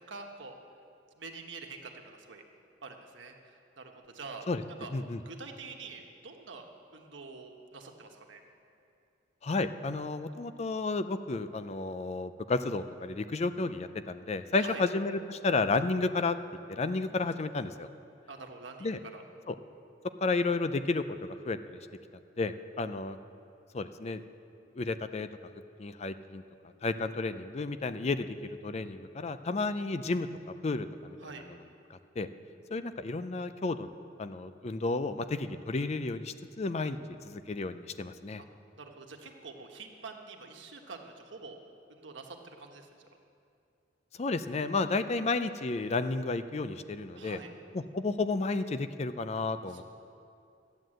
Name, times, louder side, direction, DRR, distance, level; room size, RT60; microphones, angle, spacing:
voice 1, 0.1-0.5 1.2-2.4 2.8-4.5 4.8-4.9 5.2-6.7 6.9-8.4 14.5-14.8 18.3-19.2 31.2-31.4 38.8-41.6 41.9-42.9 47.1-47.5 49.6-49.8, right 4 dB, 85° right, 3 dB, 1.3 m, -46 dB
voice 2, 9.4-16.4 16.7-17.9 18.8-19.0 19.5-19.6 20.2-21.0 21.3-21.8 22.4-23.2 23.7-24.2 24.7-25.3 25.8-26.4 26.8-28.4 28.6-30.3 30.6-31.2 31.9-32.3 32.7-33.9 34.2-37.0 37.2-38.4 44.2-47.4 47.7-49.8, left 3 dB, 35° left, 11 dB, 0.5 m, -32 dB
13.0 x 9.3 x 7.7 m, 2.6 s
head